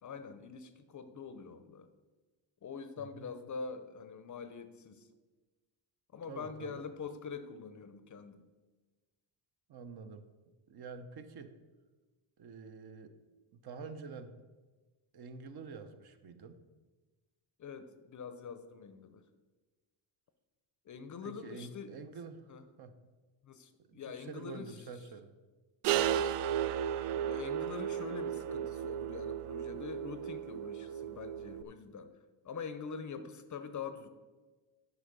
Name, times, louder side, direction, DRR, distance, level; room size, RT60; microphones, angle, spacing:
voice 1, 0.0-1.9 2.6-5.1 6.1-8.5 17.6-19.2 20.8-22.0 22.5-22.7 23.4-24.8 25.9-26.6 26.9-34.1, left 5 dB, 40° left, 11 dB, 0.6 m, -45 dB
voice 2, 6.3-6.8 9.7-10.3 10.7-11.5 12.4-13.1 13.5-14.3 15.1-16.6 21.2-22.5 22.8-22.9 23.9-25.3, right 5 dB, 50° right, 8 dB, 0.8 m, -47 dB
sound 1, 25.8-31.6, right 10 dB, 80° right, 0.6 m, -34 dB
10.0 x 5.2 x 6.6 m, 1.3 s
cardioid pair, 150°, 50 cm